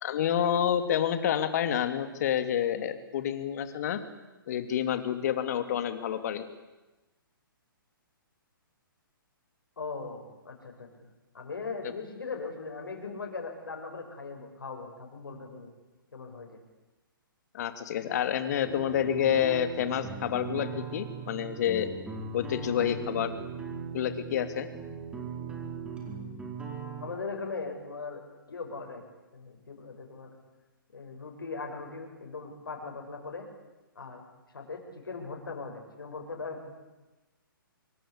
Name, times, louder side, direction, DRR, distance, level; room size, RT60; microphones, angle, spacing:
voice 1, 0.0-4.0 4.5-6.4 17.5-21.9 22.3-23.3 23.9-24.7, left 9 dB, 45° left, 10 dB, 2.9 m, -28 dB
voice 2, 9.8-11.1 11.3-15.7 16.1-16.6 27.0-28.2 28.5-29.0 29.3-30.3 30.9-33.5 34.0-34.2 34.5-36.7, left 4 dB, 70° left, 2 dB, 7.2 m, -39 dB
sound 1, 18.7-27.1, right 5 dB, 10° right, 4.9 m, -39 dB
26.0 x 24.0 x 8.8 m, 1.1 s
figure-of-eight pair, 125°, 12 cm